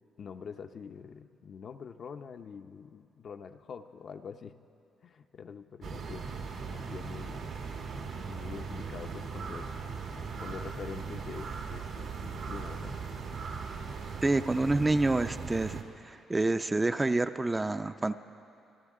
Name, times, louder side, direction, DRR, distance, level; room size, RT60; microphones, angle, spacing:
voice 1, 0.2-4.6 5.0-6.3 6.6-7.5 8.2-9.7 10.4-13.0, left 6 dB, 55° left, 8 dB, 0.6 m, -45 dB
sound 1, 5.8-15.8, right 5 dB, 75° right, 1.4 m, -39 dB
voice 2, 14.2-15.8 16.1-18.2, right 2 dB, 20° right, 10 dB, 0.4 m, -27 dB
27.5 x 12.0 x 3.7 m, 2.6 s
cardioid pair, 90°, 0 cm